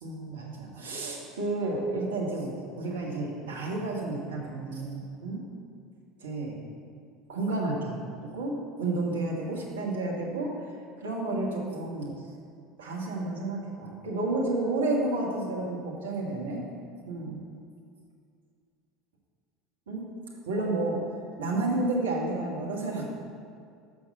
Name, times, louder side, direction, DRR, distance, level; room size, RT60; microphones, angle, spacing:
voice 1, 0.0-5.4 6.2-6.6 7.3-8.0 8.3-8.5 8.8-10.5 11.0-12.1 12.8-16.6 17.1-17.4 19.9-20.0 20.5-21.0 21.4-23.1, right 2 dB, 75° right, -2 dB, 1.6 m, -31 dB
6.6 x 5.7 x 6.6 m, 2.3 s
figure-of-eight pair, 75°, 0 cm